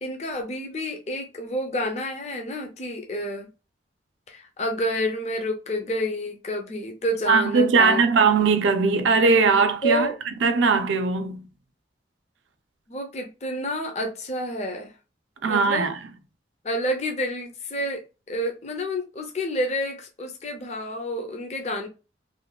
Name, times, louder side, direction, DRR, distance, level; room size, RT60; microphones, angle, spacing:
voice 1, 0.0-3.5 4.3-8.0 9.8-10.1 12.9-14.9 15.5-15.9 16.6-18.0 18.3-21.9, equal, 35° left, 0.5 m, -29 dB
voice 2, 7.3-10.1 10.4-11.4 15.4-16.0, right 4 dB, 90° right, 0.4 m, -20 dB
3.0 x 2.2 x 2.3 m
head